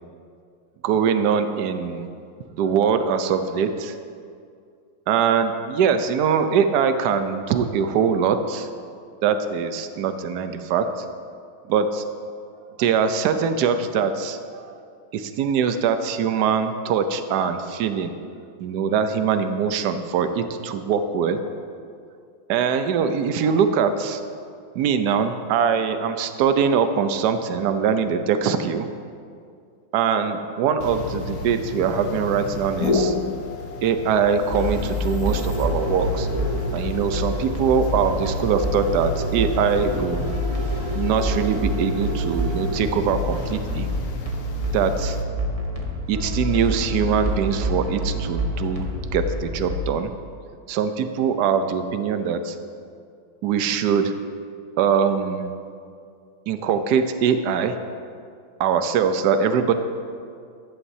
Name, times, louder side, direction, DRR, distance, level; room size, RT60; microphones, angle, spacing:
voice 1, 0.8-2.1 2.5-4.0 5.1-8.7 9.2-10.9 11.7-12.0 12.8-14.7 15.1-18.1 18.6-21.4 22.5-24.2 24.7-28.9 29.9-33.1 33.8-36.3 36.7-40.3 40.9-43.9 44.7-45.2 46.1-50.1 50.7-52.6 53.4-54.1 54.8-55.5 56.5-57.8 58.6-59.7, right 6 dB, 70° right, 9 dB, 1.0 m, -22 dB
sound 1, 30.8-45.2, left 2 dB, 55° left, 1.1 m, -31 dB
sound 2, 34.5-49.8, equal, 30° right, 0.6 m, -27 dB
14.5 x 11.5 x 2.7 m, 2.3 s
omnidirectional pair, 2.3 m